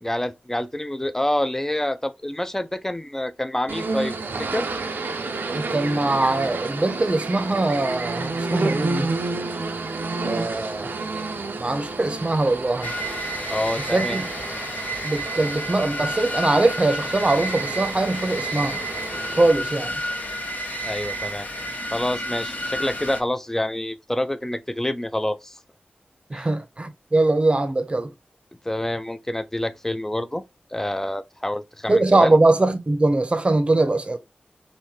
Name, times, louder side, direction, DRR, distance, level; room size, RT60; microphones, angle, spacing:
voice 1, 0.0-4.7 13.5-14.2 20.8-21.5 21.9-25.6 26.3-26.5 28.6-30.4 30.7-32.3, left 1 dB, 10° left, 0.4 m, -27 dB
sound 1, 3.7-19.5, right 3 dB, 90° right, 0.5 m, -30 dB
voice 2, 5.5-9.1 10.2-10.9 11.5-13.0 13.9-14.3 15.0-18.8 19.3-20.0 26.3-28.1 31.9-34.2, right 2 dB, 35° right, 0.6 m, -22 dB
sound 2, 12.8-23.2, equal, 55° left, 0.8 m, -30 dB
3.6 x 2.6 x 2.8 m
wide cardioid pair, 60°, 3 cm